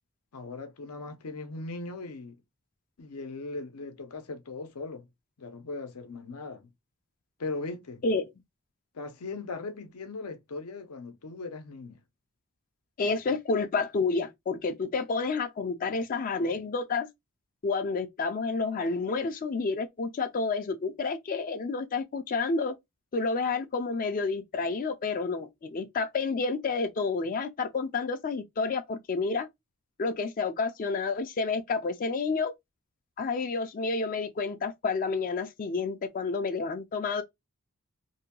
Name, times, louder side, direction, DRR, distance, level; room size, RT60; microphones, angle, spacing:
voice 1, 0.3-2.3 3.0-5.1 5.4-6.7 7.4-8.0 8.9-12.0, left 3 dB, 85° left, 0.6 m, -39 dB
voice 2, 13.0-17.1 17.6-22.7 23.1-29.5 30.0-32.5 33.2-37.2, left 4 dB, 40° left, 0.3 m, -30 dB
2.7 x 2.2 x 2.8 m
head